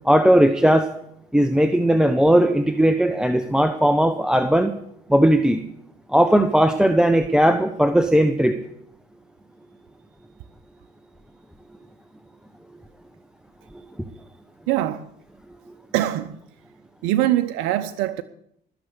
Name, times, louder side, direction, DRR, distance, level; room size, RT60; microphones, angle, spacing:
voice 1, 0.0-0.9 1.3-4.7 5.1-5.6 6.1-8.6, right 1 dB, 5° right, 1.1 m, -17 dB
voice 2, 14.7-15.1 15.9-16.4 17.0-18.2, right 13 dB, 75° right, 0.7 m, -23 dB
19.0 x 6.7 x 8.2 m
hypercardioid pair, 60°, 20 cm